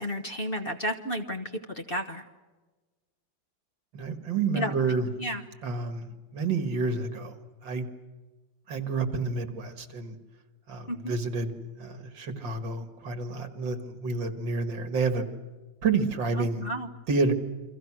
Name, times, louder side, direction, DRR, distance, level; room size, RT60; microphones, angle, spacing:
voice 1, 0.0-1.5 1.7-2.2 4.5-4.7 5.2-5.4 10.9-11.1 16.4-16.9, equal, 35° left, 6 dB, 1.3 m, -32 dB
voice 2, 3.9-5.1 5.6-6.1 6.3-7.3 7.6-7.9 8.7-10.2 10.7-15.3 15.8-16.7 17.1-17.3, right 4 dB, 75° right, 8 dB, 2.7 m, -29 dB
29.5 x 24.0 x 6.3 m, 1.2 s
omnidirectional pair, 2.1 m